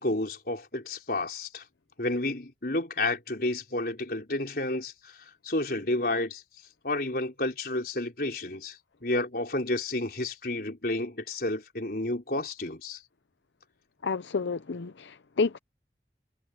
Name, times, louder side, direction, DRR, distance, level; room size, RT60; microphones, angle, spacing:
voice 1, 0.0-1.6 2.0-4.9 5.4-6.4 6.8-8.8 9.0-13.0, left 2 dB, 55° left, 4.6 m, -30 dB
voice 2, 14.0-15.6, left 4 dB, 90° left, 0.6 m, -30 dB
head